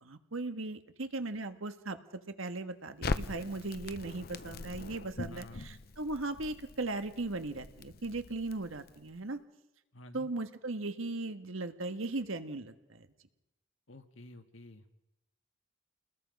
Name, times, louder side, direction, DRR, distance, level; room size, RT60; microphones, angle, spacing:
voice 1, 0.0-2.0 2.4-9.4 10.1-13.1, right 2 dB, 85° right, 9 dB, 1.5 m, -38 dB
Crackle, 3.0-9.2, left 3 dB, 50° left, 0.7 m, -41 dB
voice 2, 5.3-5.7 9.9-10.3 13.9-14.9, left 1 dB, 75° left, 7 dB, 1.7 m, -51 dB
29.0 x 20.5 x 5.4 m, 0.94 s
head